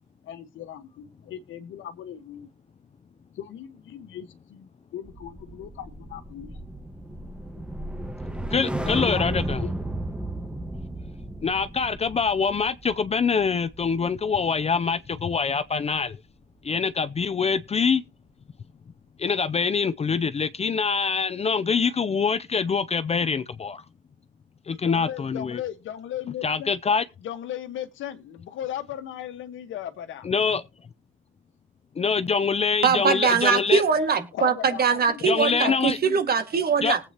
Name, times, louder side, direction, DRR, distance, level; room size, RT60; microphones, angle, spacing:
voice 1, 0.3-2.5 3.4-6.6 8.8-9.7 24.7-26.7 27.2-30.3 34.3-36.2, left 10 dB, 80° left, 1.3 m, -37 dB
sound 1, 5.0-15.5 15.8-16.1, right 1 dB, 5° right, 1.3 m, -34 dB
voice 2, 8.5-9.6 11.4-16.2 16.6-18.0 19.2-23.8 24.7-25.6 26.4-27.0 30.2-30.6 32.0-33.8 35.2-36.0 36.8-37.0, left 5 dB, 30° left, 0.5 m, -24 dB
voice 3, 32.8-37.0, right 6 dB, 50° right, 1.9 m, -22 dB
19.5 x 8.3 x 2.9 m
cardioid pair, 90°, 20 cm